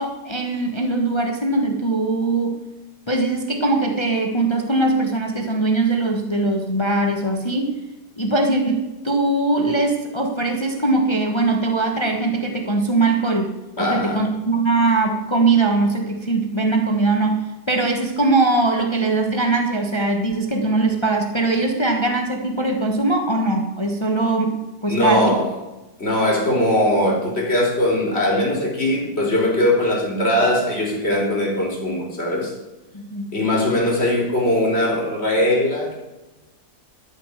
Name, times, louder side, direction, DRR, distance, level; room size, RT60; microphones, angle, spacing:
voice 1, 0.0-2.6 3.1-7.8 8.2-13.5 13.8-25.3 32.9-33.4, right 2 dB, 20° left, 3 dB, 1.2 m, -21 dB
voice 2, 13.8-14.2 24.9-25.4 26.0-32.5 33.3-35.9, left 1 dB, 35° left, -2 dB, 3.9 m, -20 dB
12.5 x 7.3 x 6.5 m, 1.1 s
omnidirectional pair, 1.8 m